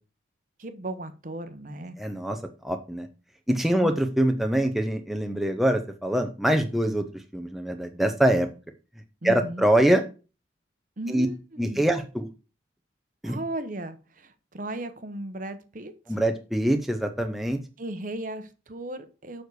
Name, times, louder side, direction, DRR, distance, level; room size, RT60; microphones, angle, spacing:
voice 1, 0.6-2.0 3.7-3.9 9.2-9.7 11.0-11.8 13.3-15.9 17.8-19.4, right 1 dB, 45° right, 10 dB, 0.9 m, -36 dB
voice 2, 2.0-2.4 2.6-3.1 3.5-7.1 7.3-8.5 9.2-10.0 11.1-11.3 11.6-12.3 13.2-13.4 16.1-17.6, right 1 dB, ahead, 4 dB, 0.7 m, -24 dB
7.1 x 6.4 x 4.7 m, 0.32 s
head